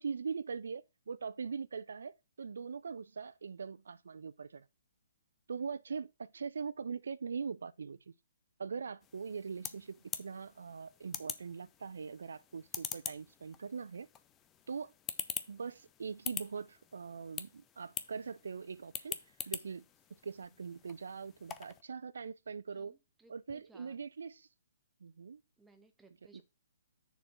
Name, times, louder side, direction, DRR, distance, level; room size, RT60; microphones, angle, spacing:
voice 1, 0.0-4.7 5.5-8.1 8.6-14.1 14.7-14.9 15.5-19.2 19.4-19.8 20.2-22.9 23.3-24.5 25.0-25.4 26.3-26.4, right 5 dB, 65° right, 0.3 m, -42 dB
sound 1, 9.0-21.8, left 9 dB, 20° left, 0.6 m, -45 dB
voice 2, 22.7-24.0 25.6-26.4, right 3 dB, 5° right, 1.1 m, -63 dB
6.9 x 4.3 x 5.6 m
figure-of-eight pair, 130°, 0 cm